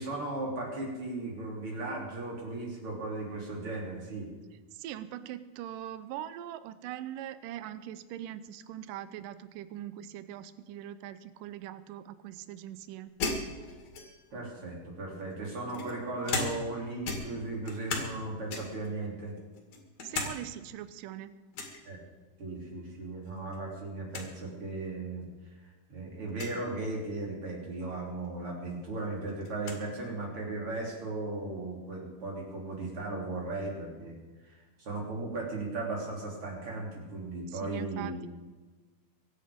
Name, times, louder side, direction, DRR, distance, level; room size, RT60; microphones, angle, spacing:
voice 1, 0.0-4.3 14.3-19.3 21.9-22.0 22.4-25.2 25.9-34.2 34.4-38.2, right 2 dB, 35° right, -1 dB, 4.0 m, -36 dB
voice 2, 4.7-13.1 20.0-21.4 37.5-38.3, right 12 dB, 80° right, 13 dB, 2.0 m, -41 dB
sound 1, 13.2-14.4 15.2-16.8 17.0-18.2 18.5-18.9 19.4-20.3 20.7-20.8 21.5-21.8 23.2-23.6 23.8-23.9 24.1-24.3 25.1-25.2 26.3-26.6 28.2-28.3 28.7-29.8, left 3 dB, 50° left, 3.2 m, -36 dB
23.5 x 9.7 x 5.2 m, 1.3 s
omnidirectional pair, 4.6 m